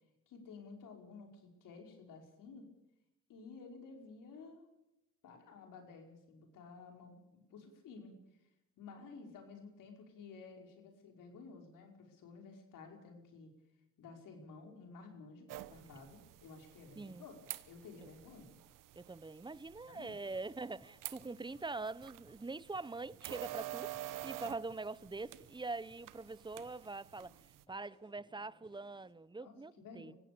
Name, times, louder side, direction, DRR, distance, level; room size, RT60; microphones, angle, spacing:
voice 1, 0.3-2.7 3.3-4.7 5.2-8.2 8.8-13.5 14.0-18.5 19.8-20.2 29.4-30.1, left 4 dB, 85° left, 5.4 m, -53 dB
sound 1, 15.5-27.6, right 14 dB, 85° right, 1.2 m, -49 dB
voice 2, 19.0-27.3 27.7-30.1, right 3 dB, 15° right, 0.8 m, -44 dB
sound 2, 19.8-29.1, left 1 dB, 15° left, 7.9 m, -69 dB
24.5 x 16.5 x 6.9 m
cardioid pair, 75°, 31 cm